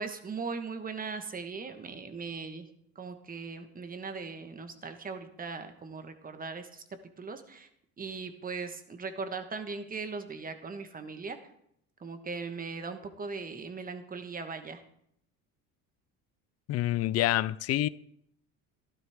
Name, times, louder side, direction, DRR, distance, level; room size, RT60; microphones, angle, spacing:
voice 1, 0.0-2.7 2.9-6.8 7.2-7.7 8.0-11.4 12.0-14.8, right 4 dB, 25° right, 1.4 m, -39 dB
voice 2, 16.7-17.9, left 14 dB, 45° left, 0.5 m, -27 dB
12.5 x 12.0 x 3.6 m
supercardioid pair, 100°, 34 cm